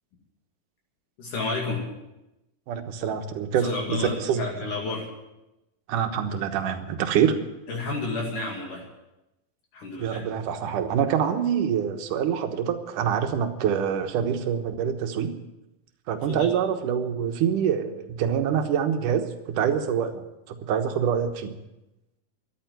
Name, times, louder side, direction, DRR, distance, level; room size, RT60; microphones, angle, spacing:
voice 1, 1.2-1.9 3.6-5.1 7.7-8.9 9.7-10.2 16.3-16.5, left 3 dB, 65° left, -2 dB, 3.9 m, -31 dB
voice 2, 2.7-4.5 5.9-7.4 10.0-15.3 16.1-21.6, right 8 dB, 70° right, 6 dB, 2.7 m, -25 dB
13.5 x 11.5 x 9.3 m, 0.95 s
omnidirectional pair, 3.9 m